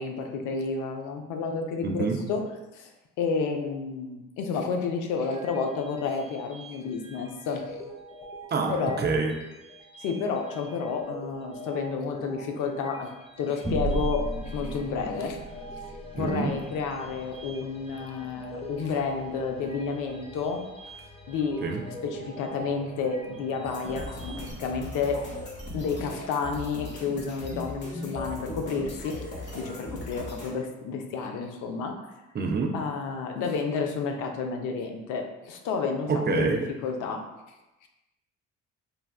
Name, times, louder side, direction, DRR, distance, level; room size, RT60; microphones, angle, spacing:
voice 1, 0.0-2.5 2.7-2.9 3.2-7.8 8.7-9.0 10.0-13.1 13.4-15.4 16.1-20.6 21.3-25.2 25.7-29.2 29.5-32.1 32.7-37.2 37.8-37.9, left 5 dB, 70° left, 3 dB, 0.5 m, -31 dB
voice 2, 1.8-2.2 8.5-9.4 16.2-16.5 21.6-21.8 32.3-32.8 36.1-36.7, right 4 dB, 35° right, 3 dB, 0.4 m, -27 dB
sound 1, 5.2-24.5, right 1 dB, 20° left, 0.6 m, -45 dB
sound 2, 13.6-18.5, right 1 dB, 10° right, 0.9 m, -35 dB
sound 3, 23.6-30.5, left 1 dB, 35° left, 1.0 m, -38 dB
3.3 x 2.2 x 2.3 m, 1.0 s
hypercardioid pair, 60°, 32 cm